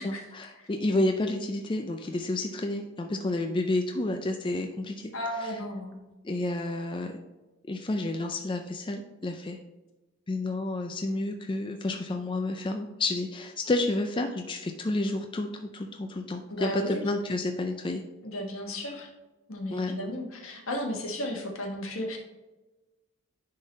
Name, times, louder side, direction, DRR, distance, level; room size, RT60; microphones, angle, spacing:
voice 1, 0.0-5.1 5.4-5.5 6.2-7.1 7.7-9.6 10.3-15.5 15.7-18.0 19.7-20.0, left 2 dB, 20° left, 4 dB, 0.4 m, -30 dB
voice 2, 5.1-6.0 16.5-17.0 18.2-19.1 19.5-22.2, left 1 dB, 70° left, 2 dB, 1.4 m, -34 dB
9.9 x 3.8 x 4.0 m, 1.1 s
head